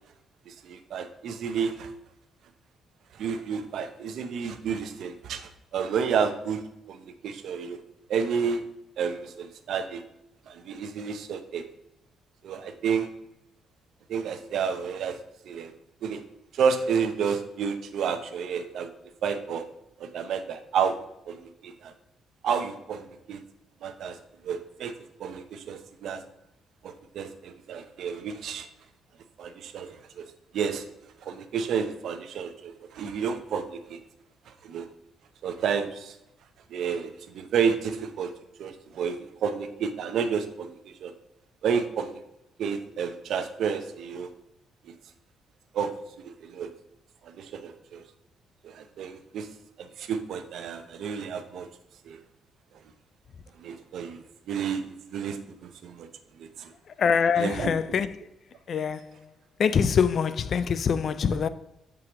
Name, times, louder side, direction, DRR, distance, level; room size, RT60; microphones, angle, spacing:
voice 1, 0.5-1.9 3.2-6.6 6.9-7.0 7.2-7.8 8.1-8.6 9.0-10.0 10.5-11.6 12.4-13.1 14.1-15.2 15.4-15.7 16.0-16.2 16.5-18.9 19.2-19.7 20.0-21.0 21.3-21.9 22.4-23.4 23.8-24.2 24.4-24.9 25.2-26.2 26.8-28.7 29.4-30.2 30.5-30.8 31.2-34.0 34.6-34.9 35.4-36.1 36.7-38.3 38.6-41.1 41.6-42.1 42.6-44.3 44.9-45.0 45.7-45.9 46.2-46.7 47.2-48.0 48.6-49.5 49.8-51.7 52.1-52.2 53.6-56.1 56.4-56.7 57.4-57.8, right 6 dB, 70° right, 0.7 m, -30 dB
voice 2, 57.0-58.1 58.7-59.0 59.6-61.5, left 6 dB, 55° left, 0.3 m, -24 dB
7.1 x 4.9 x 3.0 m
cardioid pair, 90°, 0 cm